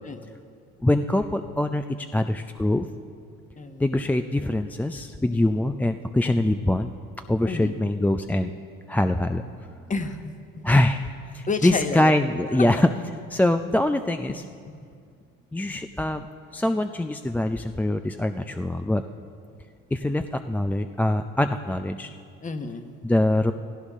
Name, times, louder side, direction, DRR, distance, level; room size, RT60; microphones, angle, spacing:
voice 1, 0.8-2.9 3.8-6.9 7.3-8.5 8.9-9.4 10.6-11.1 11.3-12.9 13.3-14.4 15.5-16.3 16.5-19.0 19.9-22.1 23.0-23.5, left 1 dB, 5° left, 8 dB, 0.4 m, -23 dB
voice 2, 3.6-4.1 7.4-7.8 9.9-10.7 11.5-12.1 22.4-23.0, left 4 dB, 25° left, 7 dB, 1.2 m, -31 dB
17.0 x 15.5 x 3.6 m, 2.2 s
supercardioid pair, 85°, 29 cm